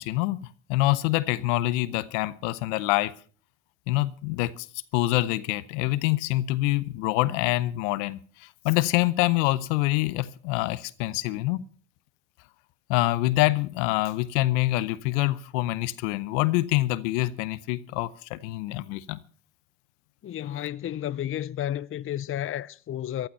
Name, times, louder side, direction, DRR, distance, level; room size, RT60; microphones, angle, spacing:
voice 1, 0.0-3.1 3.9-4.7 4.9-11.6 12.9-19.2, left 18 dB, 80° left, 0.8 m, -26 dB
voice 2, 20.2-23.3, left 11 dB, 35° left, 0.6 m, -32 dB
14.5 x 12.0 x 5.4 m
hypercardioid pair, 65°, 36 cm